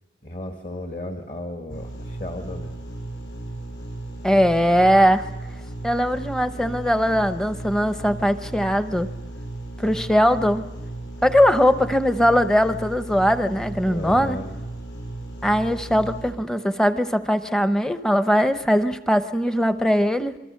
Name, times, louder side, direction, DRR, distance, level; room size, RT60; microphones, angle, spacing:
voice 1, 0.2-2.8 13.9-14.5, left 1 dB, 40° left, 4 dB, 1.8 m, -34 dB
sound 1, 1.7-16.3, right 2 dB, 65° left, 6.4 m, -35 dB
voice 2, 4.2-5.3 5.8-9.1 9.8-10.7 11.2-14.4 15.4-20.4, equal, 5° left, 10 dB, 0.8 m, -20 dB
27.5 x 23.0 x 6.6 m, 1.0 s
head